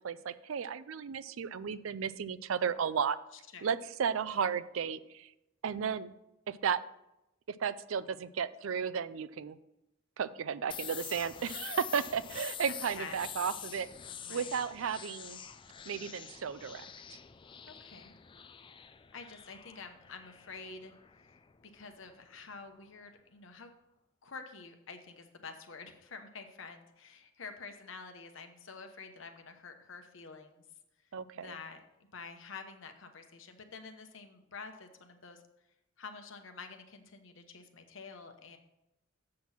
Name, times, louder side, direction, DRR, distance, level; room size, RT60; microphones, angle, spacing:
voice 1, 0.0-3.2 3.6-5.3 5.6-6.1 6.5-6.8 7.5-9.6 10.2-13.9 14.3-15.4 15.9-16.9 31.1-31.5, right 7 dB, 75° right, 16 dB, 0.4 m, -34 dB
sound 1, 10.7-22.3, left 9 dB, 25° left, 0.3 m, -46 dB
voice 2, 14.1-14.6 17.7-18.1 19.1-20.9 21.7-23.7 24.2-30.6 31.3-31.8 32.1-35.4 36.0-38.6, left 4 dB, 65° left, 6 dB, 1.0 m, -48 dB
7.6 x 6.0 x 5.7 m, 0.89 s
head